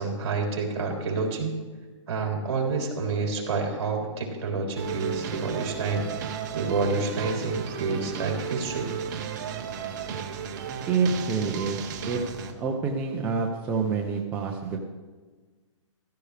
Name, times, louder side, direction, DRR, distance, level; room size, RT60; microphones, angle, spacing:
voice 1, 0.0-1.5 2.1-8.9, right 4 dB, 55° right, 0 dB, 3.4 m, -29 dB
sound 1, 4.8-12.5, right 7 dB, 35° right, 1.1 m, -34 dB
voice 2, 10.9-11.8 12.1-14.8, right 5 dB, 10° right, 0 dB, 0.5 m, -27 dB
15.0 x 14.5 x 3.3 m, 1.3 s
hypercardioid pair, 165°, 16 cm